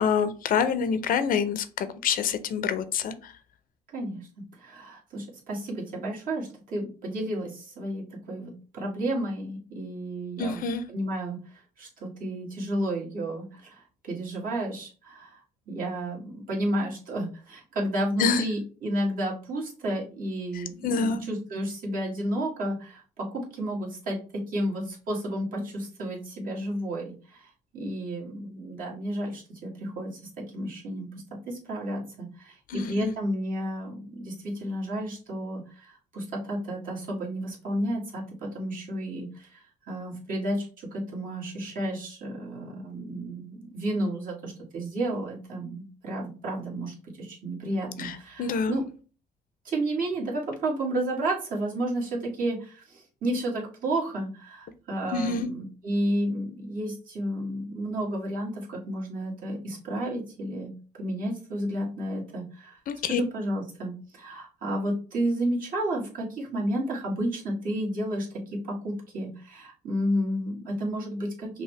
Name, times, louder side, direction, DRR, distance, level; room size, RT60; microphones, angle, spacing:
voice 1, 0.0-3.3 10.4-10.8 18.2-18.5 20.5-21.2 32.7-33.1 48.0-48.8 55.1-55.5 62.9-63.2, left 6 dB, 55° left, 12 dB, 0.5 m, -27 dB
voice 2, 3.9-4.3 4.6-10.6 10.9-11.4 11.8-15.4 15.7-24.2 24.5-30.2 30.5-31.1 31.5-48.8 49.6-60.7 61.0-62.8 63.1-71.6, right 1 dB, 55° right, -3 dB, 1.7 m, -32 dB
5.5 x 2.1 x 3.2 m, 0.38 s
cardioid pair, 110°, 17 cm